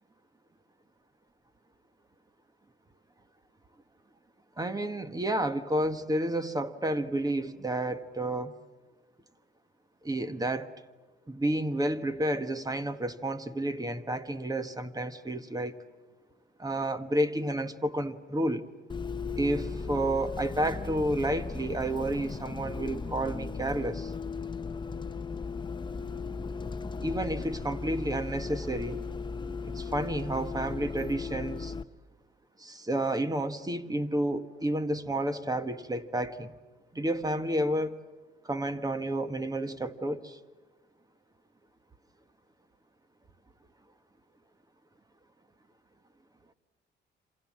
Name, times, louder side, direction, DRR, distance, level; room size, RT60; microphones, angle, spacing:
voice 1, 4.6-8.6 10.0-10.7 11.3-15.7 16.6-18.7 19.3-24.1 27.0-29.0 29.6-31.7 32.6-36.5 36.9-38.0 38.4-40.4, right 1 dB, 20° right, 1.6 m, -30 dB
Bus, 18.9-31.8, left 4 dB, 25° left, 0.9 m, -37 dB
27.5 x 27.0 x 7.5 m
cardioid pair, 90°, 20 cm